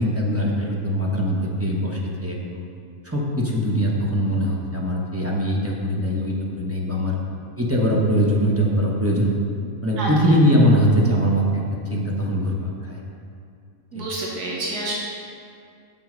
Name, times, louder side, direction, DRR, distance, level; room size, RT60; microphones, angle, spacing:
voice 1, 0.0-2.6 3.0-7.1 7.6-9.3 9.8-11.6 11.9-12.6 12.8-13.0 13.9-14.0, equal, 10° right, -3 dB, 0.7 m, -21 dB
voice 2, 13.9-14.9, right 2 dB, 80° right, -3 dB, 1.6 m, -28 dB
7.3 x 6.4 x 5.1 m, 2.4 s
omnidirectional pair, 1.7 m